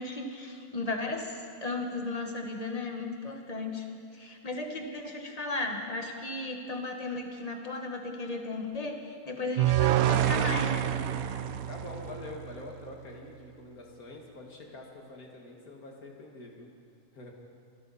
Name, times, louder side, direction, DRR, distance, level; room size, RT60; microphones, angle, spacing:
voice 1, 0.0-3.9 4.1-10.9, left 2 dB, 25° left, 3 dB, 1.5 m, -35 dB
sound 1, 9.6-12.8, right 11 dB, 70° right, 1.0 m, -27 dB
voice 2, 11.7-16.7 17.1-17.3, left 2 dB, 75° left, 0 dB, 2.5 m, -45 dB
25.5 x 12.5 x 4.2 m, 2.4 s
omnidirectional pair, 1.6 m